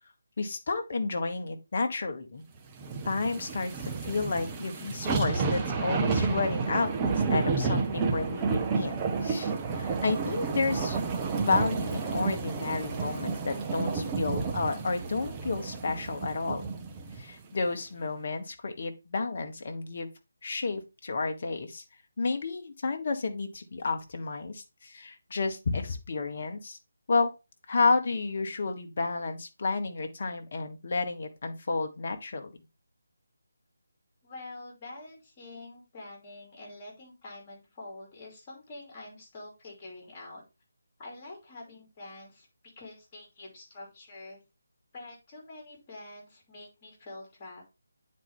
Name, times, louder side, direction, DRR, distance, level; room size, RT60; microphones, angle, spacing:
voice 1, 0.4-2.4 3.0-11.0 11.5-16.7 17.2-20.1 20.4-21.8 22.2-26.8 27.1-27.3 27.7-32.5, left 4 dB, 40° left, 6 dB, 1.0 m, -31 dB
sound 1, 2.8-17.2 17.7-17.8, right 4 dB, 15° right, 0.6 m, -30 dB
voice 2, 34.2-40.4 41.0-42.5 42.8-44.4 44.9-47.6, left 2 dB, 20° left, -1 dB, 2.8 m, -46 dB
9.0 x 4.3 x 3.5 m, 0.27 s
figure-of-eight pair, 155°, 0 cm